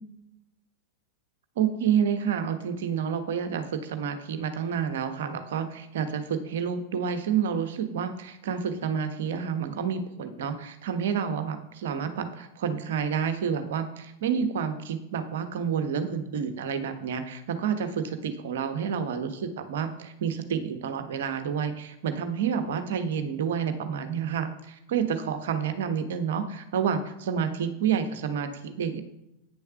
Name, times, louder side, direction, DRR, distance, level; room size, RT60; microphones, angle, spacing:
voice 1, 1.6-29.0, right 7 dB, 60° right, 8 dB, 1.1 m, -29 dB
9.0 x 7.0 x 5.8 m, 0.88 s
figure-of-eight pair, 90°, 0 cm